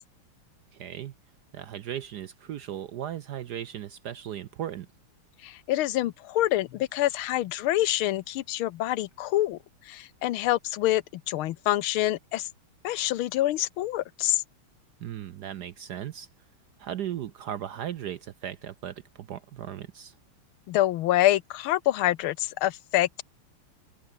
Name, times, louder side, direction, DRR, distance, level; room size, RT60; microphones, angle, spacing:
voice 1, 0.7-1.1 1.5-4.9 15.0-16.3 16.8-20.2, right 10 dB, 65° right, 1.0 m, -37 dB
voice 2, 5.4-9.6 9.9-12.5 12.8-14.4 20.7-23.2, left 14 dB, 75° left, 1.5 m, -26 dB
omnidirectional pair, 2.4 m